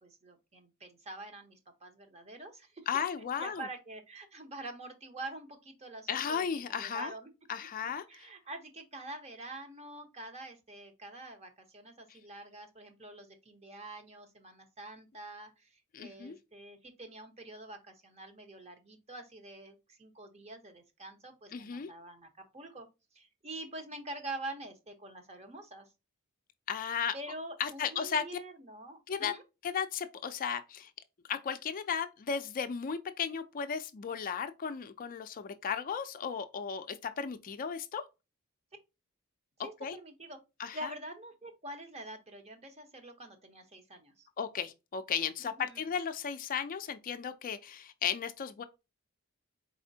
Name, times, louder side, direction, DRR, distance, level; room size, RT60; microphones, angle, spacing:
voice 1, 0.0-2.9 3.4-7.3 8.1-22.3 22.5-22.9 23.1-25.9 27.1-29.4 39.6-40.4 40.7-44.3 45.4-45.8, right 2 dB, 30° right, 0.9 m, -46 dB
voice 2, 2.9-3.7 6.1-7.1 7.5-8.3 15.9-16.4 21.5-21.9 26.7-27.1 27.6-28.2 29.1-29.3 29.6-30.9 31.3-38.0 39.6-40.0 40.6-40.9 44.4-48.6, left 7 dB, 40° left, 0.4 m, -35 dB
4.3 x 4.1 x 2.7 m
head